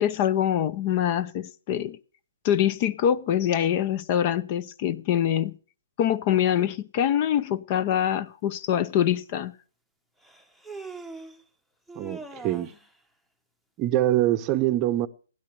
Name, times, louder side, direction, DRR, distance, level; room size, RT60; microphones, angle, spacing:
voice 1, 0.0-2.0 2.4-5.5 6.0-9.5, left 10 dB, 35° left, 0.7 m, -24 dB
Human voice, 8.8-8.9 10.2-11.4 11.9-12.9, right 3 dB, ahead, 1.0 m, -41 dB
voice 2, 11.9-12.7 13.8-15.1, right 14 dB, 25° right, 0.8 m, -24 dB
16.0 x 10.5 x 6.7 m
hypercardioid pair, 145°, 0 cm